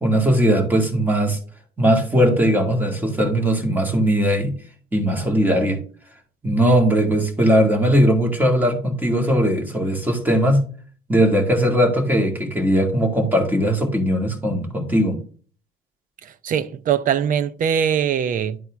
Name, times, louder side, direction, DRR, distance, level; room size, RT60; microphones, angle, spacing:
voice 1, 0.0-1.4 1.8-4.6 4.9-5.8 6.4-10.7 11.1-15.2, equal, 10° right, 2.1 m, -19 dB
voice 2, 16.2-18.6, right 8 dB, 55° right, 0.6 m, -22 dB
11.0 x 4.2 x 3.5 m
cardioid pair, 110°, 17 cm